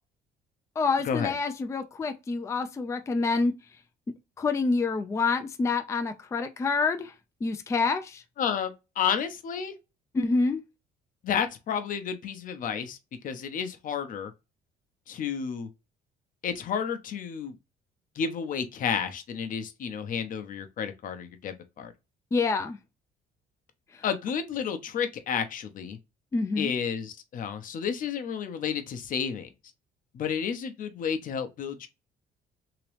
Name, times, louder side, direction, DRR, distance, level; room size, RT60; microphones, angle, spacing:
voice 1, 0.8-3.5 4.4-7.1 7.4-8.2 10.1-10.6 22.3-22.8 23.9-24.0 26.3-26.7, left 4 dB, 15° left, 0.4 m, -27 dB
voice 2, 8.4-9.7 11.2-13.0 13.2-14.3 15.1-15.7 16.4-17.6 18.1-21.9 24.0-26.0 26.6-29.5 30.1-31.9, left 7 dB, 55° left, 0.8 m, -31 dB
2.9 x 2.9 x 3.2 m
cardioid pair, 110°, 17 cm